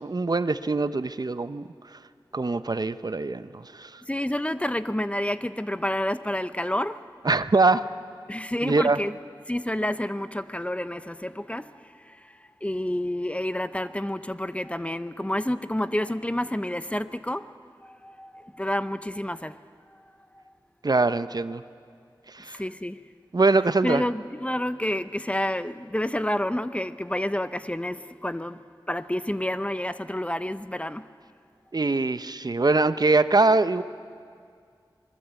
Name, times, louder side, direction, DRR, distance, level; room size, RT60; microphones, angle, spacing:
voice 1, 0.0-2.0 2.3-4.0 7.2-7.8 8.6-9.0 20.8-21.6 22.3-22.6 23.3-24.0 31.7-33.8, right 3 dB, 50° right, 0.7 m, -23 dB
voice 2, 4.1-6.9 8.3-9.1 9.5-11.6 12.6-17.4 18.6-19.5 22.6-22.9 23.8-27.9 28.2-28.5 28.9-31.0, left 1 dB, 15° left, 0.7 m, -29 dB
26.5 x 21.0 x 8.2 m
wide cardioid pair, 65°, 9 cm